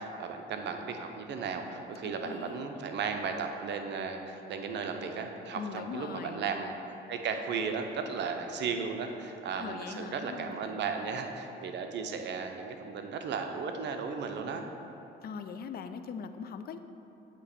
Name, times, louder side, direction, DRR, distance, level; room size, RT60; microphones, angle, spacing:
voice 1, 0.0-6.7 7.1-14.6, right 5 dB, 55° right, 5 dB, 0.6 m, -35 dB
voice 2, 2.0-2.7 5.5-6.5 9.6-10.8 15.2-16.8, left 6 dB, 45° left, 9 dB, 0.4 m, -41 dB
8.2 x 3.0 x 4.2 m, 2.9 s
supercardioid pair, 75°, 21 cm